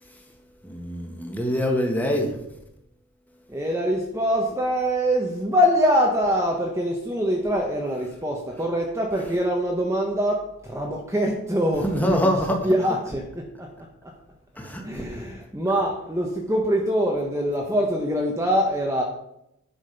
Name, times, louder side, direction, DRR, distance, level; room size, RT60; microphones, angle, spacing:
voice 1, 0.6-2.3 11.8-12.6 14.6-14.8, equal, 5° left, 2 dB, 1.6 m, -24 dB
voice 2, 3.5-12.4 12.6-13.2 13.6-13.7 14.0-14.1 14.8-19.0, equal, 15° right, 0 dB, 1.0 m, -24 dB
9.9 x 6.4 x 5.2 m, 0.80 s
head